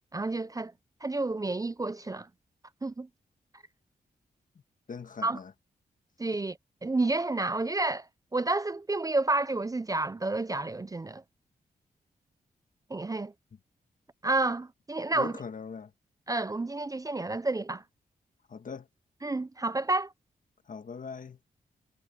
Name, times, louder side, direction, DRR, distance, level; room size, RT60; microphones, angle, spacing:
voice 1, 0.1-0.7 1.0-2.3 2.8-3.1 5.2-5.4 6.2-11.2 12.9-13.3 14.2-15.3 16.3-17.8 19.2-20.1, right 2 dB, 20° right, 0.5 m, -30 dB
voice 2, 4.9-5.5 15.1-15.9 18.5-18.9 20.7-21.4, left 5 dB, 55° left, 1.6 m, -40 dB
cardioid pair, 70°, 16 cm